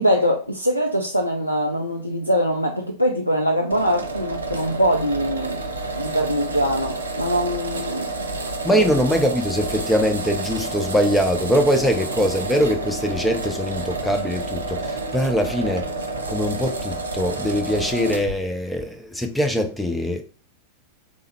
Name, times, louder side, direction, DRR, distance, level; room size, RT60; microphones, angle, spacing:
voice 1, 0.0-5.6 6.0-8.4 8.7-8.8, equal, 90° left, 0.3 m, -23 dB
sound 1, 3.7-18.4, right 2 dB, 70° right, 0.5 m, -29 dB
voice 2, 8.6-15.9 16.3-20.2, equal, 5° left, 0.5 m, -22 dB
3.4 x 2.1 x 3.1 m
figure-of-eight pair, 90°, 0 cm